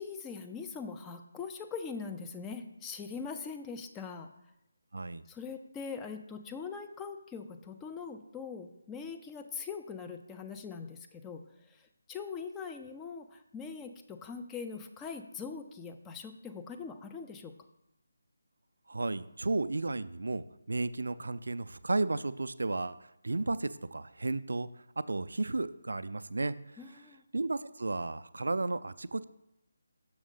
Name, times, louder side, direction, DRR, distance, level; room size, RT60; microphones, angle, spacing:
voice 1, 0.0-4.3 5.3-17.5 26.8-27.2, left 5 dB, 10° left, 6 dB, 0.4 m, -42 dB
voice 2, 4.9-5.2 18.9-24.7 25.0-27.0 27.3-29.2, right 2 dB, 70° right, 15 dB, 0.3 m, -33 dB
6.3 x 6.2 x 3.8 m, 0.86 s
figure-of-eight pair, 155°, 0 cm